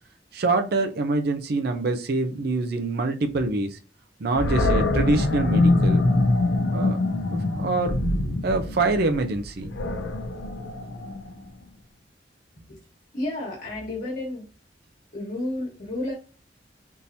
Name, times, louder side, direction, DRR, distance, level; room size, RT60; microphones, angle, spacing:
voice 1, 0.3-3.8 4.2-6.1 6.7-7.0 7.3-8.0 8.4-9.7, right 3 dB, 60° right, 0.5 m, -25 dB
Animal, 4.3-11.5, left 2 dB, 90° left, 0.6 m, -24 dB
voice 2, 13.1-14.5 15.1-16.1, left 1 dB, 55° left, 1.3 m, -31 dB
3.6 x 2.8 x 2.6 m
head